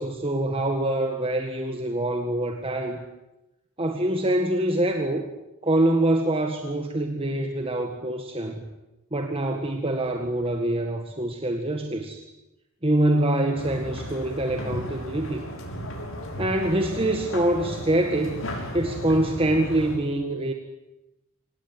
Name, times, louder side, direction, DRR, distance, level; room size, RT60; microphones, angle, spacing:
voice 1, 0.0-3.0 3.8-5.3 5.6-8.6 9.1-12.2 12.8-15.5 16.4-18.4 18.7-20.5, right 1 dB, 25° right, 4 dB, 1.8 m, -25 dB
sound 1, 13.5-20.0, equal, 60° left, 6.3 m, -35 dB
26.0 x 18.5 x 9.9 m, 0.96 s
head